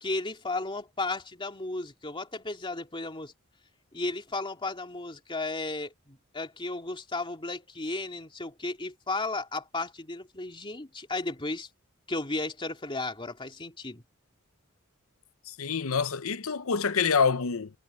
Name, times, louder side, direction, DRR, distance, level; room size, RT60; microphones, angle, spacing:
voice 1, 0.0-3.3 3.9-11.7 12.1-14.0, left 2 dB, 25° left, 2.8 m, -34 dB
voice 2, 15.5-17.7, left 5 dB, 80° left, 0.8 m, -26 dB
head